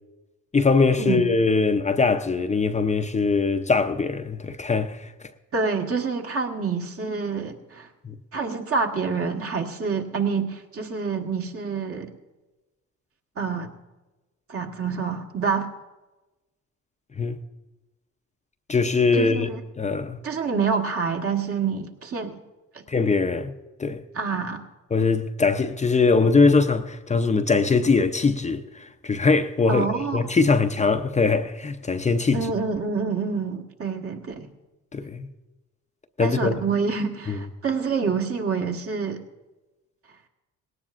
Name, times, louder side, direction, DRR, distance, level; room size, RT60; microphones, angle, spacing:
voice 1, 0.5-5.1 8.0-8.2 17.2-17.4 18.7-20.2 22.9-23.5 23.8-24.0 24.9-32.5 34.9-35.3 36.2-36.6 37.3-37.4, left 4 dB, 25° left, 0.6 m, -22 dB
voice 2, 5.5-7.9 8.3-12.1 13.4-13.7 14.5-15.7 19.1-19.6 20.2-22.4 24.1-24.6 29.7-30.2 32.3-34.5 36.2-39.2, right 5 dB, 50° right, 1.4 m, -27 dB
18.5 x 17.5 x 2.5 m
cardioid pair, 90°, 30 cm